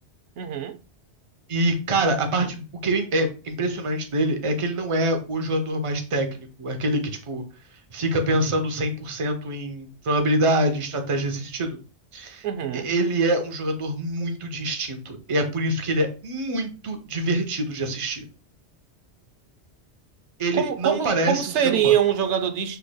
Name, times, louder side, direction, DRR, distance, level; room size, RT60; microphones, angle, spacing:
voice 1, 0.4-0.8 12.4-12.9 20.5-22.8, right 9 dB, 85° right, 0.9 m, -24 dB
voice 2, 1.5-7.4 7.9-11.8 12.1-12.5 12.7-18.2 20.4-21.9, right 1 dB, 30° right, 0.7 m, -25 dB
6.8 x 3.0 x 2.2 m
omnidirectional pair, 1.2 m